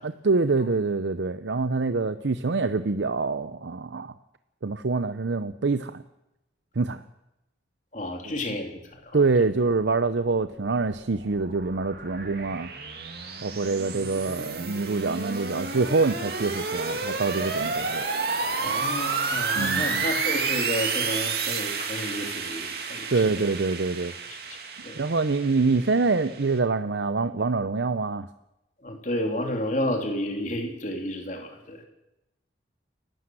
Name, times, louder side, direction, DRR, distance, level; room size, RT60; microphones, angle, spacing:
voice 1, 0.0-4.1 4.6-6.0 6.8-7.0 9.1-12.7 13.4-18.1 19.5-20.1 23.1-24.1 25.0-28.3, right 3 dB, 80° right, 12 dB, 0.7 m, -25 dB
voice 2, 7.9-8.8 9.1-9.3 18.6-23.1 24.3-24.4 24.8-25.0 28.8-31.8, left 1 dB, 45° left, 3 dB, 3.3 m, -31 dB
sound 1, 10.5-26.6, right 4 dB, 55° right, 2.5 m, -31 dB
29.0 x 12.0 x 7.7 m, 0.92 s
head